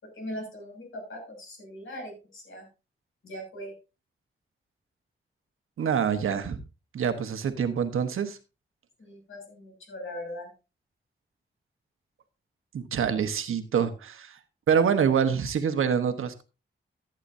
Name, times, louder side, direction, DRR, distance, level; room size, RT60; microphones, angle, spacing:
voice 1, 0.0-2.7 3.2-3.7 9.0-10.5, equal, 75° left, 1 dB, 6.6 m, -40 dB
voice 2, 5.8-6.6 6.9-8.4 12.7-14.4 14.7-16.4, right 7 dB, 90° right, 8 dB, 1.3 m, -26 dB
15.0 x 9.0 x 2.7 m, 0.30 s
cardioid pair, 70°, 21 cm